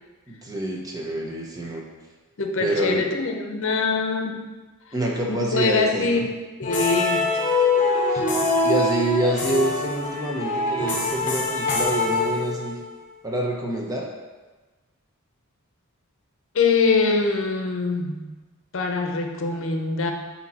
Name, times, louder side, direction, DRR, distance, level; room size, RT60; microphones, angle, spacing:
voice 1, 0.3-1.8 2.6-3.1 4.9-6.2 8.1-12.8 13.2-14.0, right 1 dB, 15° right, -1 dB, 0.8 m, -27 dB
voice 2, 2.4-4.4 5.3-6.2 6.6-7.3 16.5-18.3 18.7-20.1, left 4 dB, 60° left, 3 dB, 0.8 m, -23 dB
sound 1, 6.6-12.9, left 3 dB, 35° left, 0.9 m, -24 dB
8.6 x 2.9 x 4.2 m, 1.3 s
head